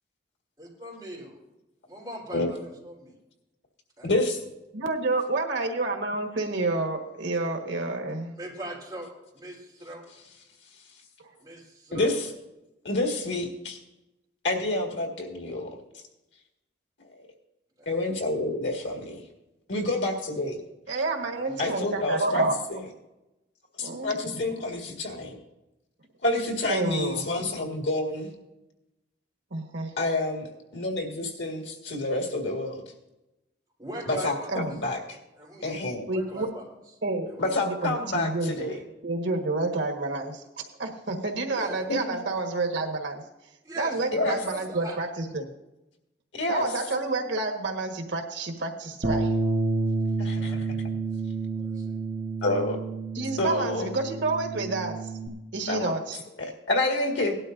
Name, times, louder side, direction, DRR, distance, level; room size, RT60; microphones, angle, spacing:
voice 1, 0.6-1.3 1.8-3.1 4.0-4.2 8.3-9.1 9.3-10.0 11.4-12.2 17.8-18.1 19.7-19.9 21.3-21.8 33.8-34.6 35.3-35.8 36.1-36.7 37.3-37.6 41.5-41.8 43.6-45.0 46.7-47.1 50.4-50.6 51.6-52.0, right 1 dB, 20° right, -5 dB, 4.1 m, -41 dB
voice 2, 4.0-4.4 11.9-12.3 12.8-13.8 14.4-15.8 17.9-19.2 19.7-20.6 21.6-22.4 23.8-25.4 26.2-28.3 30.0-30.5 30.7-32.8 34.2-34.3 34.8-35.0 35.6-36.1 37.4-38.8 41.9-42.2 44.1-44.4 46.4-46.7 50.2-50.9 52.4-52.8 53.4-53.9 55.7-55.9 56.4-57.3, left 2 dB, 85° left, 2 dB, 2.0 m, -28 dB
voice 3, 4.7-8.3 20.9-22.6 23.8-24.4 26.7-27.5 29.5-29.9 34.5-34.7 36.1-36.5 37.0-37.3 37.6-38.7 39.0-40.4 40.8-43.2 43.8-45.5 46.5-49.3 53.1-55.0 55.5-56.2, right 2 dB, 80° right, 2 dB, 1.6 m, -29 dB
Bass guitar, 49.0-55.3, right 3 dB, 50° right, 1.1 m, -29 dB
18.0 x 12.0 x 2.7 m, 0.96 s
head